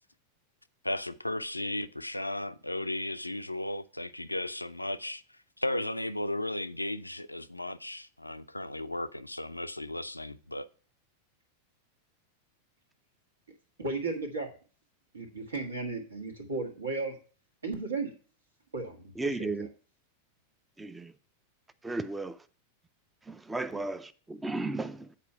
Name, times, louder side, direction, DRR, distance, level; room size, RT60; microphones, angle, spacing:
voice 1, 0.8-5.2 5.6-10.7, left 1 dB, 85° left, 0.4 m, -35 dB
voice 2, 13.8-14.5 15.1-17.2 17.6-18.1 18.7-19.7, right 3 dB, 75° right, 1.6 m, -35 dB
voice 3, 19.2-19.7 20.8-21.1 21.8-22.4 23.2-25.2, right 2 dB, 10° right, 0.4 m, -35 dB
8.3 x 4.3 x 5.5 m
figure-of-eight pair, 90°, 0 cm